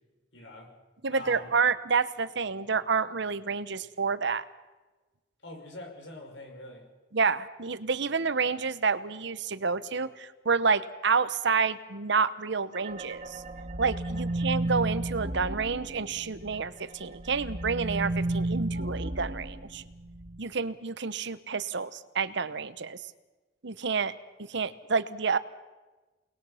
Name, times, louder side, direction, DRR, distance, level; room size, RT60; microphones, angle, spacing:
voice 1, 0.3-0.7 1.1-1.7 5.4-6.9 14.1-15.3, left 2 dB, 70° left, 2 dB, 5.9 m, -46 dB
voice 2, 1.0-4.4 7.1-13.4 13.8-19.8 20.4-23.0 23.6-24.1 24.5-25.4, right 5 dB, 70° right, 14 dB, 1.0 m, -29 dB
sound 1, 12.7-16.6 17.0-20.4, right 1 dB, 45° right, 1.6 m, -33 dB
29.0 x 20.5 x 5.8 m, 1.2 s
head